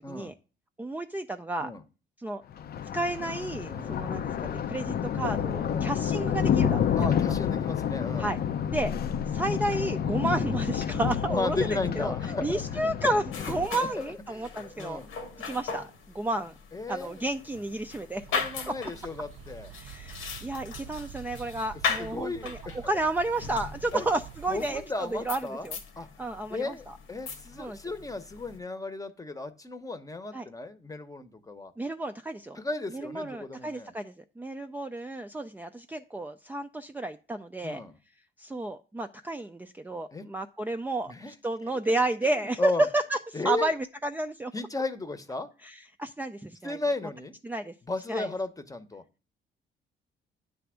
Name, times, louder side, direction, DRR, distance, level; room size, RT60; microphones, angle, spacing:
voice 1, 0.8-1.7 2.2-2.4 2.9-7.2 8.2-8.4 8.7-8.9 9.3-12.1 12.4-15.0 15.5-15.9 16.1-16.5 16.9-18.2 19.8-24.8 25.1-25.8 26.2-26.9 27.6-27.8 30.3-30.5 31.8-32.6 32.9-37.8 38.4-44.5 45.6-46.8 47.4-47.7 48.1-48.3, right 2 dB, 10° right, 5 dB, 0.4 m, -31 dB
Thunder, 2.5-13.7, left 8 dB, 55° left, 0.5 m, -29 dB
voice 2, 7.0-8.3 11.3-13.1 13.4-15.1 16.7-17.2 18.3-19.7 22.0-22.8 23.9-24.1 24.5-25.7 26.0-26.1 26.5-31.7 32.6-33.9 37.6-38.0 40.1-40.2 41.1-41.3 42.6-42.9 43.3-43.7 44.5-45.5 46.6-47.3 47.9-49.0, left 3 dB, 15° left, 10 dB, 0.8 m, -34 dB
sound 1, 13.3-28.6, left 5 dB, 85° left, 1.3 m, -39 dB
sound 2, 18.1-24.9, right 11 dB, 75° right, 0.4 m, -47 dB
9.2 x 3.4 x 6.2 m, 0.35 s
cardioid pair, 90°, 20 cm